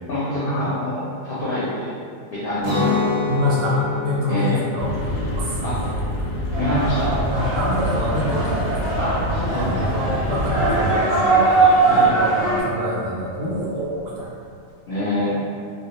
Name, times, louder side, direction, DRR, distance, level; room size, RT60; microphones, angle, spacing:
voice 1, 0.1-1.9 2.3-3.0 4.3-4.6 5.6-5.8 6.6-7.2 9.0-9.8 11.9-12.1 14.9-15.4, left 1 dB, 60° left, -9 dB, 0.6 m, -25 dB
Guitar, 2.6-8.4, left 3 dB, 20° right, 0.4 m, -28 dB
voice 2, 3.3-4.9 5.3-6.0 7.3-8.9 9.5-14.3, equal, 65° right, -5 dB, 0.7 m, -26 dB
sound 1, 4.8-11.0, equal, 85° left, 1.0 m, -26 dB
sound 2, 6.5-12.6, right 3 dB, 5° right, 0.8 m, -21 dB
2.2 x 2.0 x 2.8 m, 2.3 s
omnidirectional pair, 1.3 m